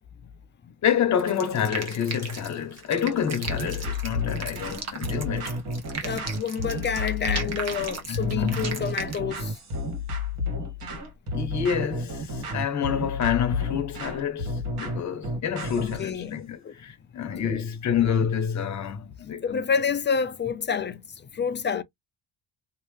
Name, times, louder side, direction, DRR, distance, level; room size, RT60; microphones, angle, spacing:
voice 1, 0.8-5.5 8.1-8.9 11.3-19.6, left 8 dB, 45° left, 1.0 m, -28 dB
sound 1, 1.2-9.2, right 5 dB, 40° right, 1.4 m, -37 dB
sound 2, 3.5-16.1, left 2 dB, 65° right, 1.8 m, -31 dB
voice 2, 6.0-9.6 15.8-16.7 17.4-17.6 19.4-21.8, left 6 dB, 30° left, 0.4 m, -29 dB
3.2 x 2.8 x 3.2 m
cardioid pair, 130°, 40 cm